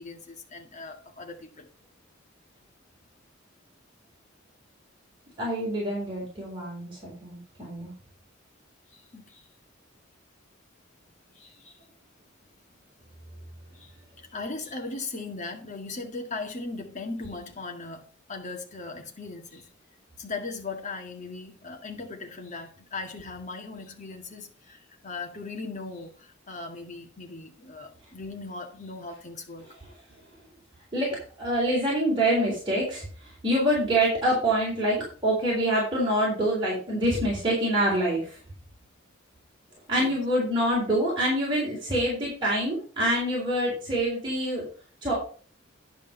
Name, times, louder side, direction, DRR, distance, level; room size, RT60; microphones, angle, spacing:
voice 1, 0.0-1.7 8.9-9.4 11.4-11.8 13.7-13.9 14.2-19.7 20.2-29.7 40.0-40.2, left 3 dB, 40° left, 2.0 m, -38 dB
voice 2, 5.4-7.9 30.9-38.4 39.9-44.6 45.0-45.1, right 1 dB, 25° right, 3.8 m, -26 dB
11.0 x 5.2 x 5.6 m
head